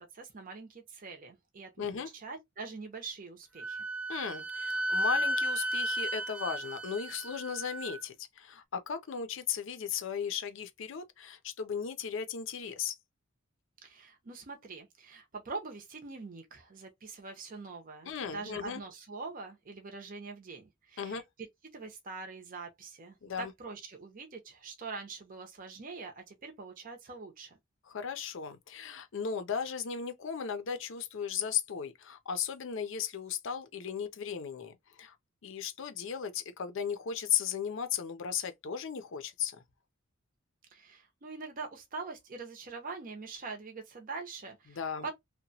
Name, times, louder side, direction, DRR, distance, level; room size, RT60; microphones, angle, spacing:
voice 1, 0.0-3.9 13.8-21.2 21.7-27.6 40.7-45.1, right 4 dB, 45° right, 0.6 m, -44 dB
voice 2, 1.8-2.1 4.1-12.9 18.0-18.8 21.0-21.2 23.2-23.5 27.8-35.2 35.4-39.6 44.7-45.1, left 7 dB, 65° left, 0.5 m, -36 dB
Wind instrument woodwind instrument, 3.6-8.0, right 1 dB, 5° right, 0.3 m, -33 dB
2.8 x 2.1 x 2.6 m
head